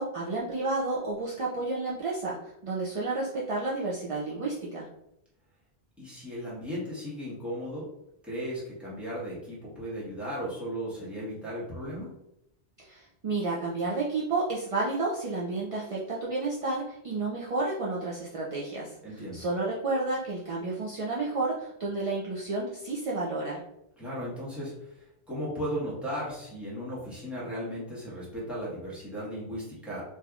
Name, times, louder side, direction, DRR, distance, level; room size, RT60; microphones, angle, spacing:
voice 1, 0.0-4.9 12.8-23.6, right 3 dB, 50° right, -5 dB, 0.4 m, -31 dB
voice 2, 6.0-7.9 8.2-12.1 19.0-19.4 24.0-30.0, equal, ahead, -9 dB, 1.2 m, -36 dB
3.3 x 2.7 x 2.4 m, 0.82 s
omnidirectional pair, 1.1 m